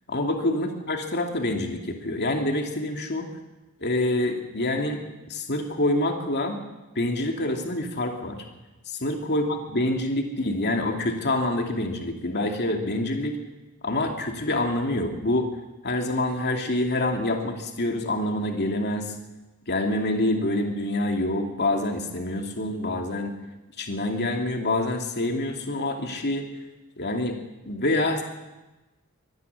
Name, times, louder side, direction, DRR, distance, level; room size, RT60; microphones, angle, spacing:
voice 1, 0.1-3.3 3.8-5.0 5.3-6.6 6.9-8.4 8.9-13.4 13.8-15.5 15.8-19.1 19.7-23.3 23.8-26.5 27.0-27.4 27.7-28.2, left 1 dB, 50° left, 3 dB, 2.7 m, -26 dB
24.5 x 11.0 x 9.9 m, 1.1 s
head